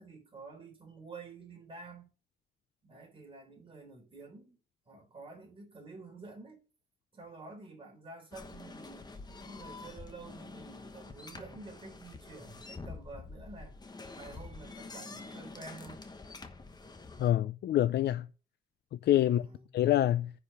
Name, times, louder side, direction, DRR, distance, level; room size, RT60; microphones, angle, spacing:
voice 1, 0.0-2.1 2.8-4.6 4.9-6.6 7.1-13.7 14.2-16.0 19.2-19.7, right 3 dB, 30° right, 4.0 m, -49 dB
sound 1, 8.3-17.3, left 3 dB, 25° left, 1.1 m, -47 dB
voice 2, 17.2-18.3 19.0-19.5 19.7-20.3, left 12 dB, 75° left, 0.4 m, -26 dB
9.8 x 4.9 x 6.5 m
wide cardioid pair, 160°, 17 cm